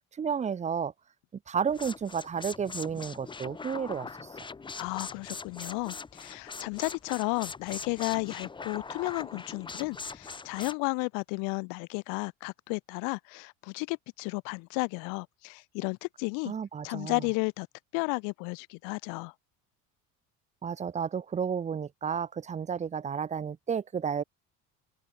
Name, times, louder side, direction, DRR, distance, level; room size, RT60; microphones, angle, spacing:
voice 1, 0.2-0.9 1.5-4.3 16.4-17.2 20.6-24.2, right 7 dB, 20° right, 2.9 m, -32 dB
sound 1, 1.7-10.7, left 4 dB, 15° left, 6.9 m, -42 dB
voice 2, 4.7-16.5 16.8-17.7 17.9-19.3, left 33 dB, 75° left, 1.6 m, -33 dB
open air
cardioid pair, 170°, 33 cm